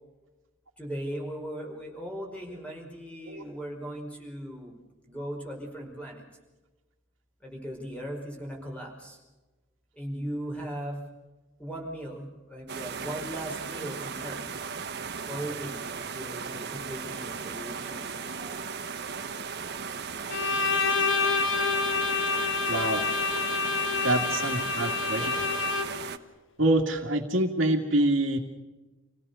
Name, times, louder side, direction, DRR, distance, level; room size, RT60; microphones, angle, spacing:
voice 1, 0.8-4.7 5.1-6.2 7.4-9.2 9.9-11.0 11.6-14.4 15.3-15.8 16.1-18.6 23.8-23.9, right 1 dB, 5° left, 0 dB, 5.3 m, -38 dB
sound 1, 12.7-26.2, right 5 dB, 55° right, 1.3 m, -36 dB
Bowed string instrument, 20.3-26.1, left 4 dB, 65° left, 1.5 m, -28 dB
voice 2, 22.7-23.0 24.0-25.5 26.6-28.4, right 1 dB, 70° right, -4 dB, 2.1 m, -26 dB
28.0 x 17.5 x 6.9 m, 1.2 s
head